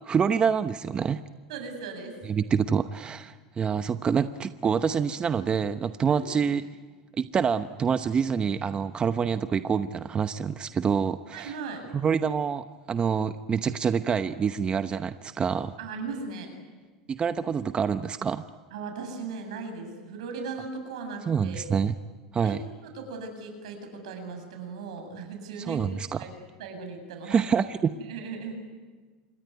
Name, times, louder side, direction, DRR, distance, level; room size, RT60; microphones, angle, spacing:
voice 1, 0.0-1.2 2.2-6.6 7.2-11.5 11.9-15.7 17.1-18.4 21.3-21.9 22.3-22.6 25.6-26.2 27.3-27.9, right 6 dB, 30° right, 11 dB, 0.9 m, -26 dB
voice 2, 1.5-2.2 6.0-6.5 11.3-11.8 15.8-16.5 18.7-21.6 22.4-26.3 26.6-27.4 28.0-28.6, right 4 dB, 80° right, 5 dB, 7.8 m, -38 dB
27.0 x 23.0 x 9.6 m, 1.4 s
hypercardioid pair, 95°, 3 cm